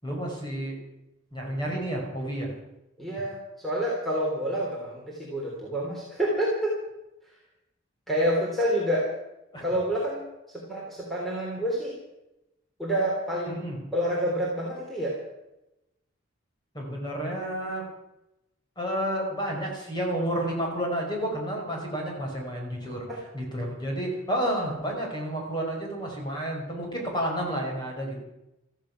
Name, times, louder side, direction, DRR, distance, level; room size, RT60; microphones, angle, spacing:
voice 1, 0.0-0.7 1.3-2.5 9.5-9.6 13.5-13.8 16.7-17.8 18.8-23.1 23.3-28.2, right 1 dB, 20° left, -1 dB, 5.3 m, -30 dB
voice 2, 3.0-6.8 8.1-9.1 9.6-12.0 12.8-13.7 13.9-15.2 23.1-23.2, equal, ahead, -5 dB, 3.5 m, -28 dB
16.0 x 14.5 x 6.0 m, 0.91 s
head